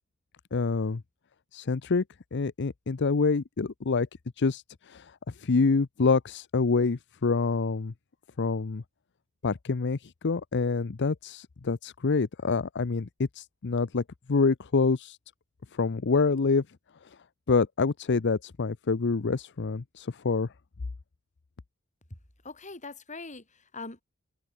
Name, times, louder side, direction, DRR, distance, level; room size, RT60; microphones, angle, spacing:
voice 1, 0.5-1.0 1.5-2.0 2.3-4.1 4.4-7.9 8.4-8.8 9.4-13.1 13.3-14.0 14.3-15.2 15.7-16.6 17.5-20.5, left 4 dB, 55° left, 0.6 m, -26 dB
voice 2, 22.4-24.0, left 3 dB, 35° left, 3.9 m, -42 dB
head